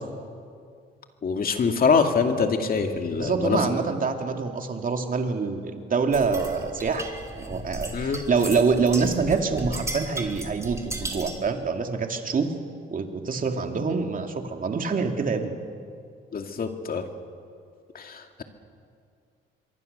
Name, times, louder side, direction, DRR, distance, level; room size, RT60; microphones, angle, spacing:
voice 1, 1.2-3.7 7.9-8.2 16.3-17.0 17.9-18.4, left 5 dB, 45° left, 5 dB, 2.4 m, -24 dB
voice 2, 3.2-7.1 7.3-12.5 12.9-15.6, right 4 dB, 45° right, 4 dB, 2.6 m, -26 dB
sound 1, 6.1-11.5, right 2 dB, 15° right, 3.2 m, -36 dB
25.0 x 23.0 x 6.8 m, 2.3 s
cardioid pair, 90°, 20 cm